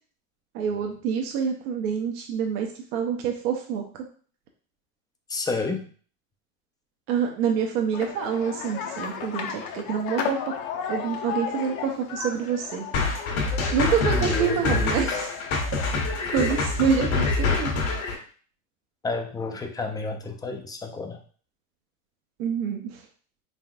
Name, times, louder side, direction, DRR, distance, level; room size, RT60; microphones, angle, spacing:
voice 1, 0.5-3.8 7.1-10.4 10.9-12.9 13.7-15.3 16.3-17.7 22.4-23.0, right 7 dB, 70° right, 2 dB, 0.8 m, -27 dB
voice 2, 5.3-5.9 9.2-9.3 14.1-15.1 19.0-21.2, left 4 dB, 10° left, 4 dB, 0.3 m, -31 dB
sound 1, 7.9-18.1, left 7 dB, 55° left, 0.7 m, -35 dB
sound 2, 12.9-18.1, left 3 dB, 70° left, 1.3 m, -25 dB
3.8 x 3.4 x 2.4 m, 0.43 s
hypercardioid pair, 100°, 42 cm